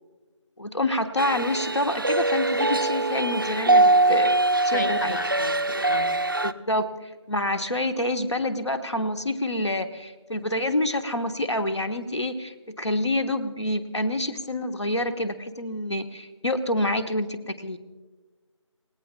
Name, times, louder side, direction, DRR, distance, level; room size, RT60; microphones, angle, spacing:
voice 1, 0.6-4.4 4.6-5.2 6.4-17.8, left 1 dB, 60° left, 8 dB, 1.3 m, -27 dB
sound 1, 1.2-6.5, right 2 dB, 40° right, 0.5 m, -22 dB
voice 2, 4.7-6.1, left 2 dB, 35° left, 6 dB, 1.2 m, -33 dB
29.0 x 18.0 x 2.3 m, 1.3 s
figure-of-eight pair, 165°, 16 cm